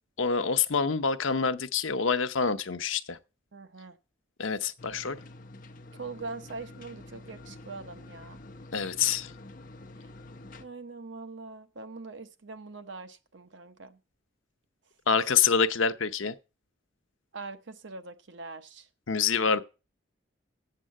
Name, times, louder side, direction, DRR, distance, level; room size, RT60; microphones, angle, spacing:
voice 1, 0.2-3.2 4.4-5.2 8.7-9.3 15.1-16.3 19.1-19.6, left 6 dB, 80° left, 0.7 m, -26 dB
voice 2, 3.5-4.0 5.9-8.4 10.0-10.1 10.6-14.0 17.3-18.9 19.5-19.6, right 3 dB, 70° right, 0.9 m, -42 dB
sound 1, 4.8-10.6, left 2 dB, 45° left, 0.8 m, -48 dB
7.6 x 7.2 x 7.5 m
head